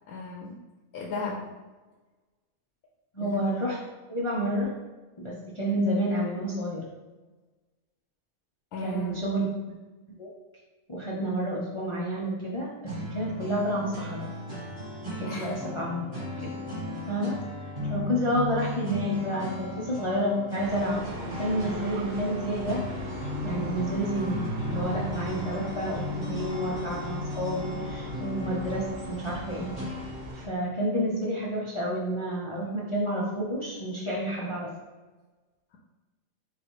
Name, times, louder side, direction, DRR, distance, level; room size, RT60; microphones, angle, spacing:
voice 1, 0.1-0.5 0.9-1.5 3.2-3.5 8.7-9.3 15.2-15.6, left 3 dB, 80° left, -2 dB, 1.1 m, -35 dB
voice 2, 3.1-3.8 4.1-4.7 5.2-6.9 8.8-9.5 10.2-10.3 10.9-14.3 15.1-16.5 17.1-17.4 17.9-22.8 23.4-29.8 30.3-34.7, equal, 50° left, -5 dB, 0.3 m, -30 dB
sound 1, 12.9-30.3, left 1 dB, 30° right, 1.6 m, -36 dB
sound 2, 20.6-30.5, right 2 dB, 55° right, 0.5 m, -42 dB
Bowed string instrument, 21.3-29.6, left 2 dB, 80° right, 1.2 m, -44 dB
4.7 x 2.4 x 4.6 m, 1.2 s
omnidirectional pair, 1.5 m